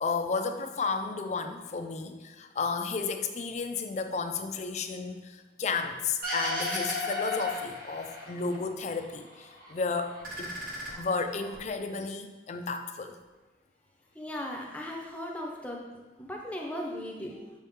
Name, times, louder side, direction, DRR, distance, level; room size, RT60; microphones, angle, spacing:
voice 1, 0.0-10.5 11.0-13.2, left 4 dB, 40° left, 6 dB, 0.4 m, -33 dB
sound 1, 6.2-8.6 8.9-9.7 10.1-11.6, left 1 dB, 50° right, 1.4 m, -35 dB
voice 2, 14.1-17.5, left 1 dB, 10° left, -1 dB, 0.7 m, -38 dB
6.3 x 4.2 x 3.6 m, 1.2 s
head